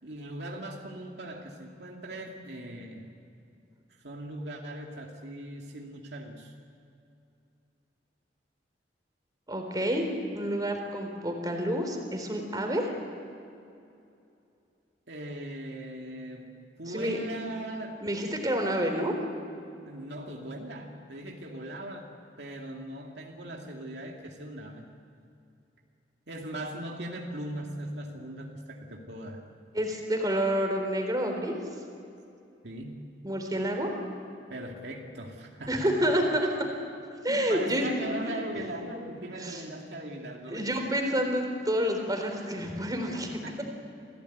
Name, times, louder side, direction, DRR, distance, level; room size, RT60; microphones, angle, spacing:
voice 1, 0.0-3.1 4.0-6.5 15.1-16.5 16.8-18.0 19.9-22.1 22.4-24.9 26.3-29.4 32.6-33.0 34.5-36.1 37.3-40.7 43.4-43.6, right 1 dB, 70° right, 0 dB, 2.5 m, -39 dB
voice 2, 9.5-10.1 10.3-12.9 16.9-17.2 18.0-19.1 29.7-31.5 33.2-33.9 35.7-36.7 37.2-38.4 39.4-39.7 40.5-43.3, equal, 20° right, 3 dB, 3.9 m, -29 dB
28.0 x 17.5 x 9.4 m, 2.6 s
head